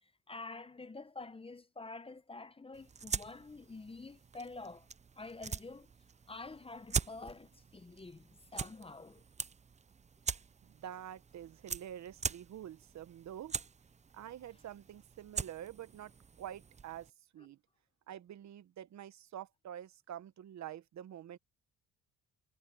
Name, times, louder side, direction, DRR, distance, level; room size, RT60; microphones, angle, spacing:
voice 1, 0.0-4.9 5.2-5.9 6.3-9.2, left 3 dB, 20° left, 0.8 m, -48 dB
sound 1, 2.7-17.1, right 5 dB, 25° right, 0.6 m, -43 dB
voice 2, 10.6-13.6 14.1-16.1 16.4-17.6 18.1-21.4, right 10 dB, 65° right, 1.2 m, -47 dB
cardioid pair, 90°, 30 cm